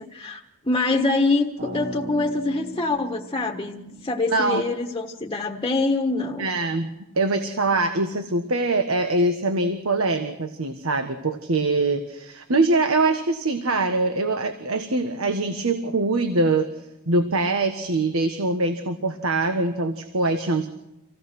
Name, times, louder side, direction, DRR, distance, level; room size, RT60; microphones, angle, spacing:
voice 1, 0.0-6.5, left 3 dB, 20° left, 2 dB, 1.4 m, -25 dB
sound 1, 1.6-5.7, equal, 50° right, 3.5 m, -39 dB
voice 2, 4.3-4.6 6.4-6.9 7.1-16.7 17.1-20.7, right 2 dB, 80° right, 8 dB, 1.5 m, -23 dB
26.0 x 17.0 x 6.2 m, 0.91 s
head